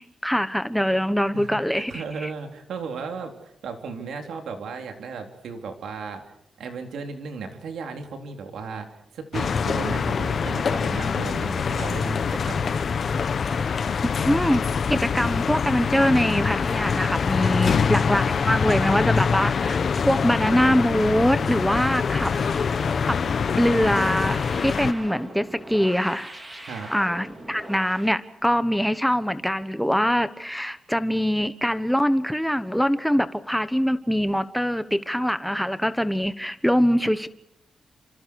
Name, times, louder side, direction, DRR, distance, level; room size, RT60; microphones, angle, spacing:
voice 1, 0.0-2.3 14.0-19.8 20.0-22.3 23.1-23.2 23.6-26.3 26.9-37.3, equal, ahead, 12 dB, 1.2 m, -23 dB
voice 2, 1.3-6.2 6.6-8.9 9.1-12.8 17.5-17.8 26.7-26.9, right 5 dB, 90° right, 4 dB, 3.9 m, -35 dB
sound 1, 9.3-24.9, left 6 dB, 45° left, 1.1 m, -24 dB
sound 2, 22.1-28.2, right 1 dB, 20° right, 4.7 m, -41 dB
29.5 x 27.0 x 4.8 m, 0.74 s
wide cardioid pair, 155°, 0 cm